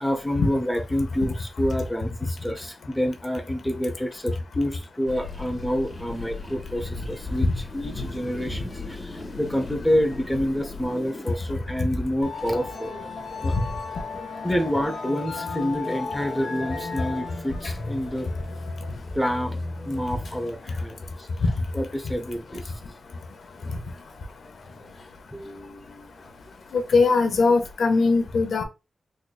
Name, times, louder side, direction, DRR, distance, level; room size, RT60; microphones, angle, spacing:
voice 1, 0.0-12.9 13.4-13.6 14.4-18.3 19.1-21.0 21.7-22.7 25.3-26.1, equal, ahead, 0.6 m, -28 dB
sound 1, 5.1-11.3, left 3 dB, 30° left, 1.7 m, -38 dB
Musical instrument, 12.2-27.7, left 3 dB, 55° left, 1.2 m, -37 dB
voice 2, 26.7-28.6, left 4 dB, 75° left, 0.7 m, -20 dB
3.9 x 3.2 x 2.3 m
wide cardioid pair, 155°, 0 cm